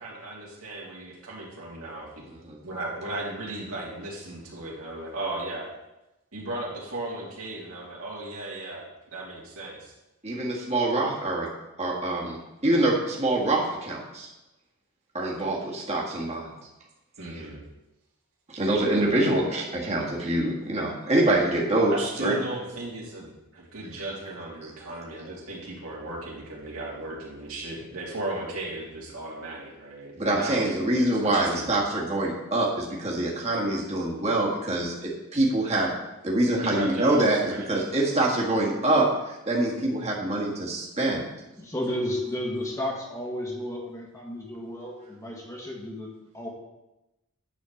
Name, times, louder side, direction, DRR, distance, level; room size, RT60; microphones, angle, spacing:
voice 1, 0.0-2.3 2.6-5.7 6.3-9.9 17.2-17.6 21.9-30.6 31.1-31.7 36.6-37.7, right 2 dB, 70° right, -4 dB, 2.9 m, -36 dB
voice 2, 2.3-2.6 10.2-11.5 11.8-14.3 15.1-16.5 17.3-17.4 18.5-22.4 30.2-35.9 36.2-41.2, right 1 dB, 30° right, -3 dB, 1.9 m, -25 dB
voice 3, 41.6-46.5, left 1 dB, 15° left, -1 dB, 1.5 m, -33 dB
10.0 x 4.3 x 7.1 m, 0.97 s
head